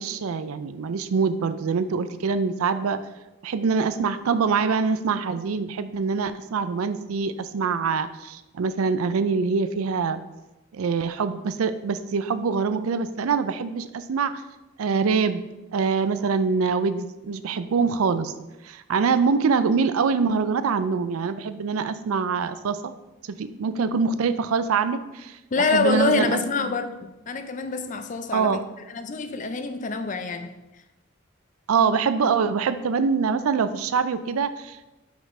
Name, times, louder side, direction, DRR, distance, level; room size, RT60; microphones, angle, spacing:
voice 1, 0.0-3.0 3.4-10.2 10.7-14.3 14.8-15.4 15.7-18.3 18.6-22.9 23.4-26.7 28.3-28.6 31.7-34.8, right 5 dB, 90° right, 0.4 m, -24 dB
voice 2, 25.5-28.6 28.9-30.6, left 3 dB, 35° left, 0.4 m, -26 dB
5.6 x 4.7 x 4.3 m
head